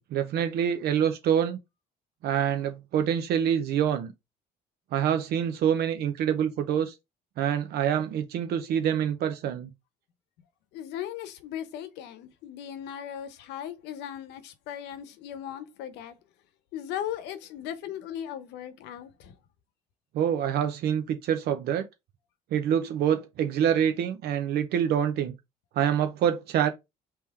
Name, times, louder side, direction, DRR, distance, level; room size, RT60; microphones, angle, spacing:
voice 1, 0.1-1.6 2.2-4.1 4.9-6.9 7.4-9.7 20.1-21.9 22.5-25.3 25.8-26.7, right 9 dB, 70° right, 0.6 m, -26 dB
voice 2, 10.7-16.1 16.7-19.3, left 10 dB, 85° left, 0.8 m, -37 dB
3.6 x 2.9 x 4.5 m
cardioid pair, 110°, 17 cm